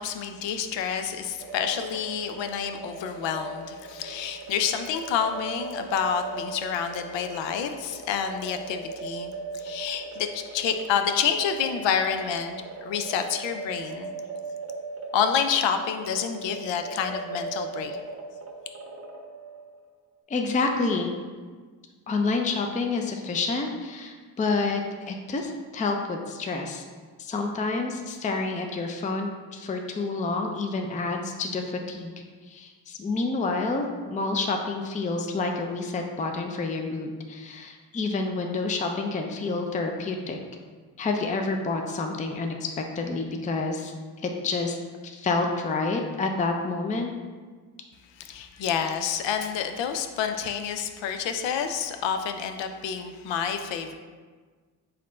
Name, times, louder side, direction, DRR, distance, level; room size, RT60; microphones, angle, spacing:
voice 1, 0.0-14.1 15.1-18.0 48.2-54.0, left 7 dB, 80° left, 7 dB, 0.5 m, -28 dB
sound 1, 1.4-19.8, right 3 dB, 35° right, 0.7 m, -39 dB
voice 2, 20.3-21.1 22.1-26.8 27.2-32.1 32.5-40.4 41.0-43.9 44.2-44.8 45.0-47.1, left 3 dB, 20° left, 3 dB, 0.4 m, -28 dB
4.1 x 2.6 x 4.2 m, 1.5 s
cardioid pair, 65°, 44 cm